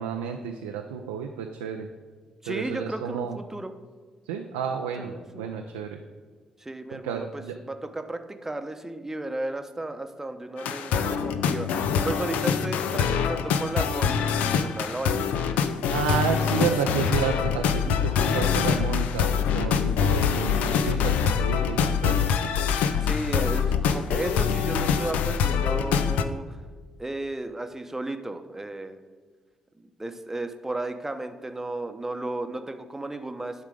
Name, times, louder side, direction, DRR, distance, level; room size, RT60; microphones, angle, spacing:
voice 1, 0.0-1.9 2.5-3.4 4.3-6.0 6.9-7.5 15.9-19.3 19.5-22.4, right 7 dB, 80° right, 4 dB, 0.4 m, -31 dB
voice 2, 2.4-3.7 5.0-5.5 6.6-14.3 14.6-15.3 23.0-26.6 27.0-29.0 29.8-33.6, right 2 dB, 15° right, 7 dB, 0.8 m, -34 dB
sound 1, 10.6-26.2, left 7 dB, 70° left, 0.4 m, -24 dB
10.5 x 3.7 x 5.0 m, 1.5 s
hypercardioid pair, 40°, 3 cm